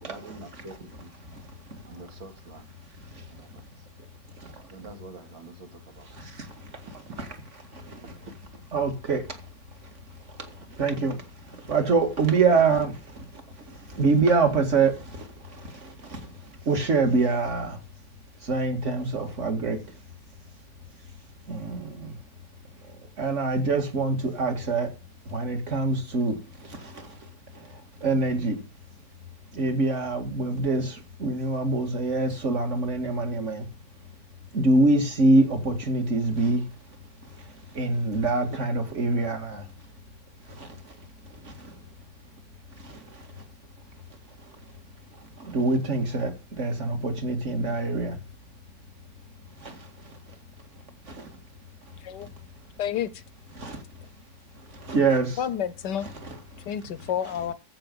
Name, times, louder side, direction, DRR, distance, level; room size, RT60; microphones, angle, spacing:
voice 1, 0.0-1.1 1.9-2.7 3.3-3.8 4.6-6.4 7.1-7.2 8.2-8.3, right 3 dB, 85° right, 2.9 m, -46 dB
voice 2, 8.7-9.2 10.8-11.2 11.7-13.2 13.9-15.3 15.8-16.2 16.7-17.8 18.4-19.8 21.5-22.1 23.2-24.9 25.3-26.4 26.7-27.1 28.0-28.6 29.5-33.7 34.5-36.6 37.8-39.6 40.6-40.7 41.5-41.6 42.9-43.0 45.4-46.3 46.6-48.2 49.6-49.7 51.2-51.3 53.6-53.8 54.8-55.4 56.3-56.4, right 3 dB, 40° right, 2.1 m, -24 dB
voice 3, 52.8-53.2 55.4-56.1 56.7-57.5, left 9 dB, 70° left, 1.3 m, -29 dB
14.5 x 5.9 x 5.3 m
omnidirectional pair, 2.1 m